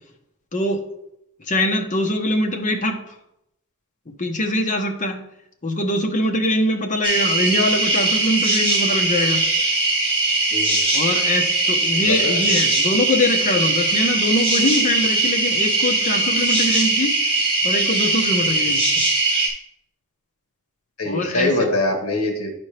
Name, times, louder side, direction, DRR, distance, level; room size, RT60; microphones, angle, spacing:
voice 1, 0.5-0.8 1.5-3.0 4.1-5.2 5.6-9.4 10.9-17.1 17.6-18.9 21.0-21.5, left 1 dB, 35° left, 4 dB, 0.9 m, -23 dB
sound 1, 7.0-19.5, right 2 dB, 25° right, 2.3 m, -20 dB
voice 2, 11.9-12.4 21.0-22.5, left 2 dB, 80° left, 2 dB, 1.3 m, -23 dB
10.5 x 4.3 x 3.3 m, 0.82 s
head